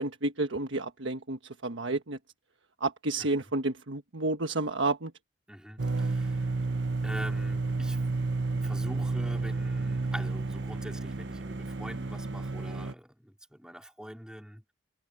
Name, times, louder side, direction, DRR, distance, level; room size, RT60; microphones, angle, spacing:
voice 1, 0.0-2.2 2.8-5.1, right 2 dB, 85° right, 1.4 m, -30 dB
voice 2, 5.5-6.6 7.0-8.1 8.5-14.6, equal, 5° right, 4.0 m, -44 dB
sound 1, 5.8-12.9, right 3 dB, 70° right, 0.9 m, -31 dB
head